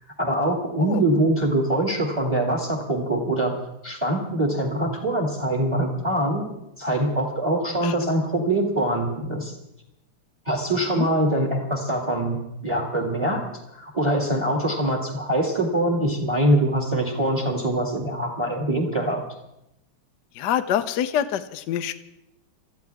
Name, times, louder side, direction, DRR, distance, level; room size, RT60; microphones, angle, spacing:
voice 1, 0.2-3.5 3.8-6.4 6.8-9.6 10.4-13.4 13.7-19.2, right 1 dB, 10° right, 0 dB, 2.5 m, -23 dB
voice 2, 20.4-21.9, left 10 dB, 65° left, 9 dB, 1.2 m, -25 dB
25.5 x 14.0 x 3.6 m, 0.86 s
omnidirectional pair, 2.4 m